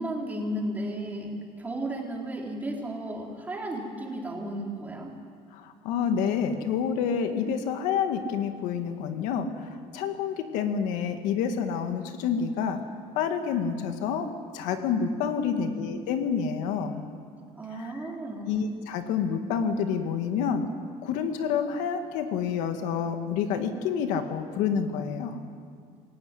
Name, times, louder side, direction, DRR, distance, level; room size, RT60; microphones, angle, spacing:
voice 1, 0.0-5.1 15.5-15.8 17.6-18.6, right 1 dB, 15° right, -1 dB, 3.9 m, -34 dB
voice 2, 5.5-12.8 13.1-17.0 17.7-17.9 18.5-20.7 21.0-25.4, left 7 dB, 85° left, 6 dB, 2.0 m, -28 dB
26.5 x 15.5 x 9.8 m, 2.2 s
cardioid pair, 155°, 13 cm